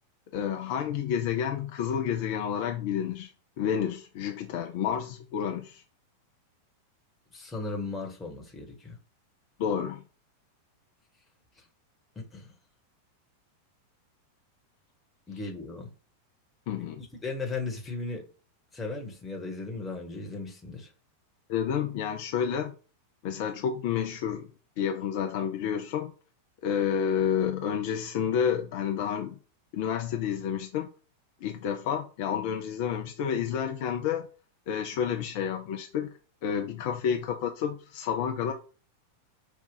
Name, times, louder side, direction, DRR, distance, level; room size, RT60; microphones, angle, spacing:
voice 1, 0.3-5.8 9.6-10.0 16.7-17.0 21.5-22.7 23.2-24.5 24.8-26.1 26.6-29.4 29.7-30.9 31.4-34.3 34.7-36.1 36.4-38.5, left 8 dB, 50° left, 0.5 m, -30 dB
voice 2, 7.3-9.0 12.1-12.5 15.3-15.9 17.2-18.2 18.7-20.9, left 3 dB, 15° left, 1.2 m, -36 dB
5.1 x 2.4 x 3.8 m
figure-of-eight pair, 90°, 0 cm